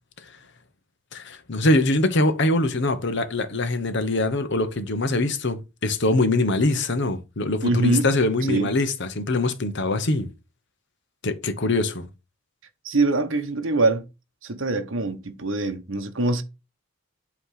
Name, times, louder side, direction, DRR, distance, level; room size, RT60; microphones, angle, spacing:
voice 1, 1.1-10.3 11.2-12.1, left 2 dB, 60° left, 1.1 m, -23 dB
voice 2, 7.6-8.1 8.5-8.7 12.8-14.0 14.4-16.4, right 2 dB, 65° right, 1.1 m, -23 dB
8.4 x 3.2 x 5.8 m
head